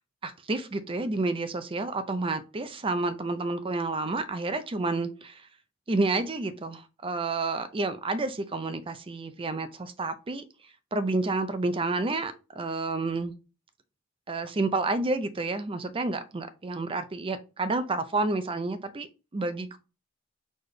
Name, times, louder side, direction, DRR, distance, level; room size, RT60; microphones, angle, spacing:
voice 1, 0.2-5.5 5.9-10.4 10.9-13.3 14.3-19.1 19.3-19.8, right 3 dB, 25° right, 0.5 m, -30 dB
4.3 x 3.2 x 3.2 m
head